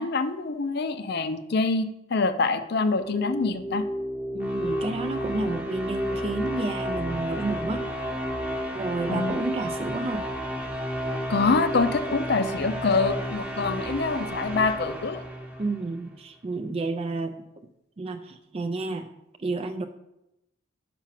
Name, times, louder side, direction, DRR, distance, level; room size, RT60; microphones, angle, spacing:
voice 1, 0.0-3.9 9.1-9.4 11.3-15.2, left 3 dB, 55° left, 10 dB, 0.5 m, -25 dB
sound 1, 2.9-16.0, equal, 5° right, 0.9 m, -32 dB
voice 2, 4.3-7.9 8.7-10.3 15.6-17.5 18.0-19.1 19.4-19.9, right 2 dB, 30° right, 8 dB, 0.4 m, -30 dB
5.9 x 5.7 x 5.8 m, 0.89 s
head